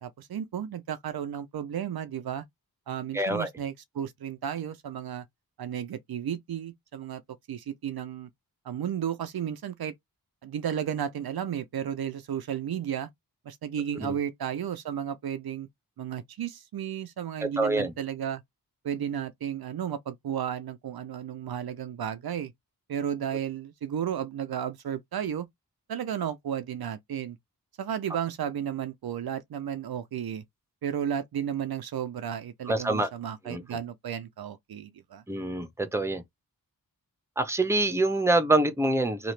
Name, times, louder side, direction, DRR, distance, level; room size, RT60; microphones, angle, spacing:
voice 1, 0.0-2.4 2.9-5.3 5.6-7.2 7.5-8.3 8.6-9.9 10.4-13.1 13.5-15.7 16.0-18.4 18.8-22.5 22.9-25.5 25.9-27.4 27.8-30.4 30.8-35.2, right 9 dB, 80° right, 0.5 m, -33 dB
voice 2, 3.1-3.5 14.0-14.2 17.6-17.9 32.7-33.1 33.5-33.6 35.3-36.2 37.4-39.3, right 2 dB, 5° right, 0.7 m, -25 dB
2.9 x 2.4 x 3.1 m
wide cardioid pair, 55°, 37 cm